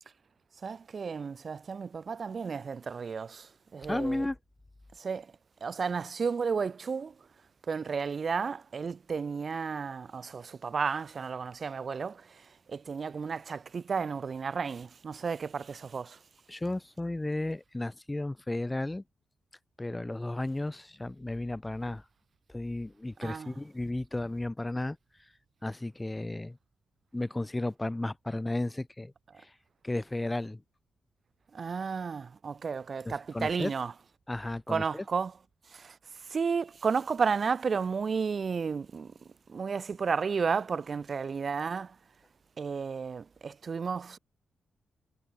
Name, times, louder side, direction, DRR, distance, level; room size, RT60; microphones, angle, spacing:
voice 1, 0.6-4.3 5.0-5.3 5.6-7.1 7.7-16.2 23.2-23.5 31.5-33.9 34.7-35.3 35.7-39.1 39.5-42.0 42.6-44.2, right 5 dB, 50° right, 5.4 m, -33 dB
voice 2, 3.9-4.4 16.5-19.0 19.8-22.0 22.5-25.0 25.6-26.6 27.1-29.1 29.4-29.5 29.8-30.6 33.0-33.7 34.3-35.0, left 2 dB, 15° left, 6.3 m, -34 dB
cardioid pair, 75°, 0 cm